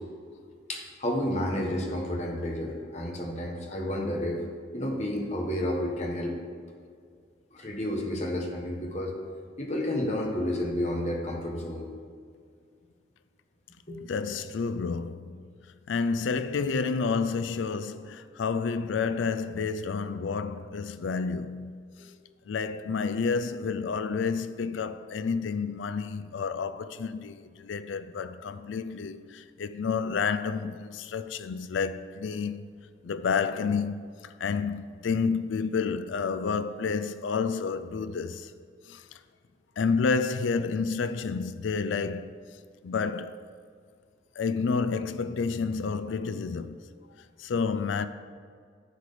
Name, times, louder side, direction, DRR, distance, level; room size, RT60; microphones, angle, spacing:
voice 1, 0.7-4.4 4.7-6.4 7.5-9.1 9.6-11.9 13.9-14.0, left 1 dB, 35° left, 1.4 m, -31 dB
voice 2, 14.0-15.5 15.9-22.1 22.5-32.7 33.0-38.5 38.9-39.2 39.8-42.3 42.8-43.5 44.4-46.8 47.4-48.1, left 5 dB, 85° left, 0.4 m, -30 dB
10.5 x 4.8 x 6.8 m
head